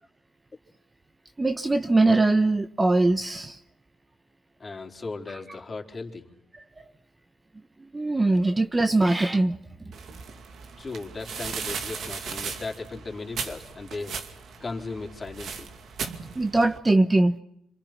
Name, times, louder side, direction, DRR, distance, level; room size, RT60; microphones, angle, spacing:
voice 1, 1.4-3.6 6.5-6.8 7.9-9.6 16.3-17.4, right 2 dB, 20° right, 1.0 m, -22 dB
voice 2, 4.6-6.3 10.8-14.2 14.6-15.7, left 3 dB, 30° left, 4.0 m, -36 dB
sound 1, 9.9-16.8, right 6 dB, 65° right, 2.4 m, -37 dB
27.0 x 26.5 x 6.0 m
cardioid pair, 90°, 0 cm